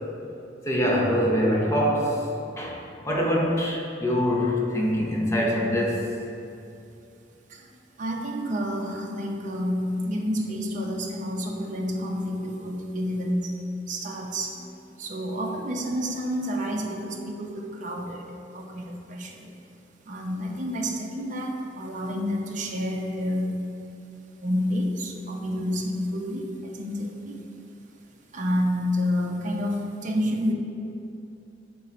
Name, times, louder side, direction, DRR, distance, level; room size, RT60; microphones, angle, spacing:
voice 1, 0.7-2.2 2.6-2.8 3.0-6.0, equal, 15° left, -3 dB, 0.8 m, -24 dB
voice 2, 8.0-19.5 20.1-23.7 24.4-27.5 28.3-30.5, equal, 45° right, 0 dB, 0.6 m, -29 dB
6.2 x 3.8 x 4.2 m, 2.7 s
head